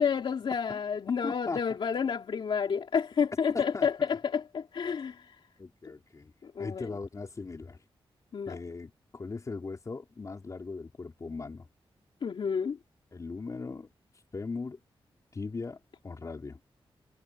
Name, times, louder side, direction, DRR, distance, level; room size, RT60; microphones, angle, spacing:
voice 1, 0.0-5.4 6.4-6.9 8.3-8.6 12.2-12.8, left 6 dB, 65° left, 2.7 m, -30 dB
voice 2, 1.2-1.6 3.5-3.9 5.6-6.3 6.6-7.8 8.5-11.7 13.1-13.9 14.3-14.8 15.3-16.6, left 4 dB, 35° left, 4.4 m, -39 dB
wide cardioid pair, 140°, 10 cm